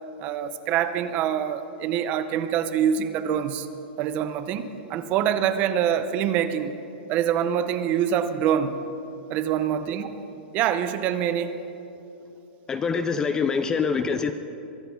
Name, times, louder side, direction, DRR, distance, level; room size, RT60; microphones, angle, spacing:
voice 1, 0.2-3.7 4.0-6.7 7.1-8.8 9.3-10.1 10.5-11.5, right 9 dB, 25° right, 11 dB, 0.6 m, -25 dB
voice 2, 12.7-14.3, left 5 dB, 10° left, 9 dB, 0.3 m, -25 dB
23.0 x 9.3 x 5.7 m, 2.9 s
hypercardioid pair, 165°, 6 cm